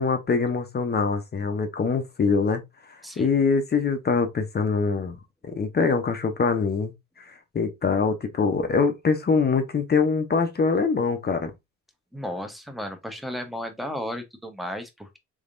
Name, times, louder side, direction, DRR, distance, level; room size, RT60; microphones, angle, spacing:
voice 1, 0.0-2.6 3.2-5.2 5.4-6.9 7.3-11.5, left 5 dB, 35° left, 0.7 m, -23 dB
voice 2, 12.1-15.2, equal, ahead, 0.8 m, -34 dB
3.5 x 3.5 x 2.5 m
cardioid pair, 90°, 30 cm